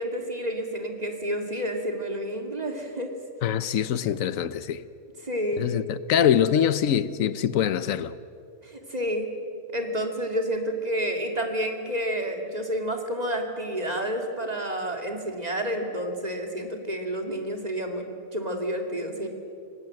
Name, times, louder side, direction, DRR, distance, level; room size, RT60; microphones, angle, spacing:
voice 1, 0.0-3.1 5.2-5.7 8.6-9.3 9.7-18.1 18.3-19.3, equal, 30° right, 2.5 m, -30 dB
voice 2, 3.4-4.8 5.6-8.1, left 9 dB, 90° left, 1.2 m, -24 dB
26.0 x 18.0 x 7.6 m
omnidirectional pair, 1.4 m